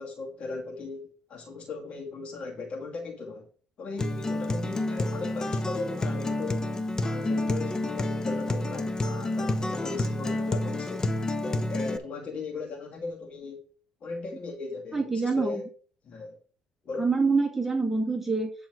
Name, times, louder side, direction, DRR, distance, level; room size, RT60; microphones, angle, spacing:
voice 1, 0.0-3.5 3.8-6.7 7.0-11.1 11.4-13.6 14.0-15.7 16.0-16.4 16.8-17.1, left 3 dB, 50° left, 1 dB, 2.3 m, -37 dB
Acoustic guitar, 4.0-12.0, left 2 dB, 25° left, 0.9 m, -29 dB
voice 2, 14.9-15.5 17.0-18.5, right 4 dB, 10° right, 0 dB, 1.9 m, -25 dB
11.0 x 3.8 x 6.0 m, 0.41 s
cardioid pair, 105°, 3 cm